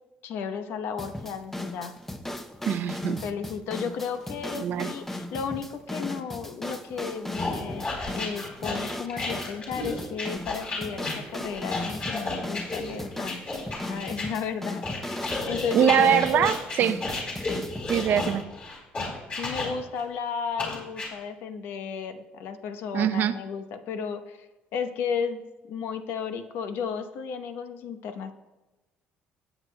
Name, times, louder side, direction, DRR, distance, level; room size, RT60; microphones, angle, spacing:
voice 1, 0.2-1.9 3.1-7.9 8.1-13.4 13.8-16.5 19.4-25.4 25.7-28.3, left 6 dB, 75° left, 8 dB, 0.8 m, -33 dB
sound 1, 1.0-18.4, left 1 dB, 5° left, 0.6 m, -37 dB
voice 2, 2.7-3.2 4.5-5.0 15.7-17.1 17.9-18.5 22.9-23.3, right 9 dB, 55° right, 13 dB, 0.5 m, -23 dB
sound 2, 7.3-14.3 14.8-20.0 20.6-21.1, left 3 dB, 35° left, 3.7 m, -32 dB
17.0 x 8.1 x 2.2 m, 1.1 s
cardioid pair, 110°, 4 cm